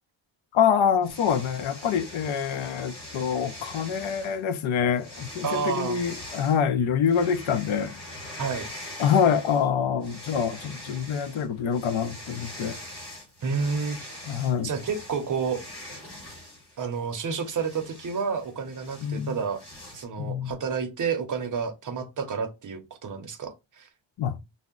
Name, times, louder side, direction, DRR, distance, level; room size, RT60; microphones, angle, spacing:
voice 1, 0.5-8.0 9.0-12.8 14.3-14.7 19.0-19.4 20.2-20.6 24.2-24.4, left 7 dB, 75° left, 0.5 m, -25 dB
sound 1, 1.0-4.4 4.9-6.6 7.1-9.7 10.0-20.0, left 1 dB, 25° left, 1.5 m, -43 dB
voice 2, 5.4-6.0 8.4-8.7 13.4-14.2 14.6-15.6 16.8-19.6 19.9-23.9, right 5 dB, 40° right, 0.6 m, -30 dB
2.6 x 2.0 x 3.6 m
wide cardioid pair, 160°, 48 cm